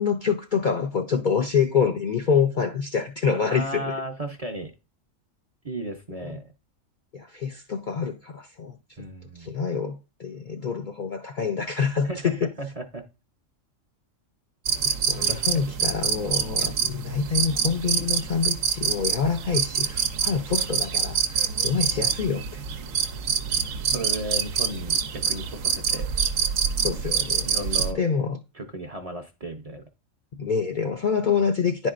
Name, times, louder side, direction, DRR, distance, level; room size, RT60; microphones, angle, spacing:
voice 1, 0.0-3.9 6.2-6.3 7.1-8.8 9.4-12.5 15.1-22.6 26.8-27.5 27.9-28.4 30.3-31.9, left 6 dB, 60° left, 0.5 m, -26 dB
voice 2, 3.5-4.7 5.6-6.4 9.0-9.5 12.0-13.0 14.8-15.0 15.3-15.5 23.9-26.1 27.4-28.0 28.5-29.8, right 1 dB, 40° right, 0.6 m, -35 dB
sound 1, 14.7-27.9, right 6 dB, 80° right, 1.0 m, -26 dB
10.5 x 4.5 x 2.4 m
omnidirectional pair, 1.3 m